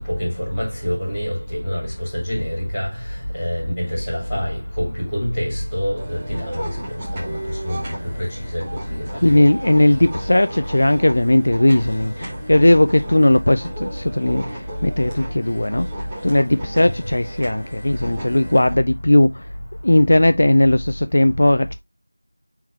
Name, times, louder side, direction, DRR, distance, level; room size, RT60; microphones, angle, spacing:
voice 1, 0.1-2.9 3.4-6.6 7.2-7.4 7.6-8.6 8.9-9.0 9.3-9.4, equal, 5° left, 3.0 m, -26 dB
sound 1, 6.0-18.8, right 1 dB, 10° right, 1.0 m, -35 dB
voice 2, 9.2-15.9 16.2-19.5 19.8-21.7, left 1 dB, 50° left, 0.4 m, -17 dB
8.6 x 3.9 x 2.8 m
figure-of-eight pair, 175°, 0 cm